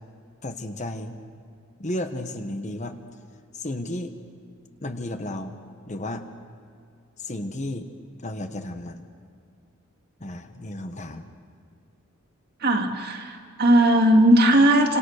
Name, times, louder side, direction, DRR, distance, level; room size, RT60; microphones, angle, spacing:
voice 1, 0.4-1.2 1.8-3.0 3.5-4.2 4.8-5.6 5.9-6.3 7.2-7.9 8.2-9.1 10.2-11.3, left 1 dB, 30° left, 7 dB, 1.2 m, -33 dB
voice 2, 12.6-15.0, right 1 dB, 45° right, 2 dB, 2.4 m, -18 dB
28.5 x 26.0 x 6.6 m, 2.4 s
head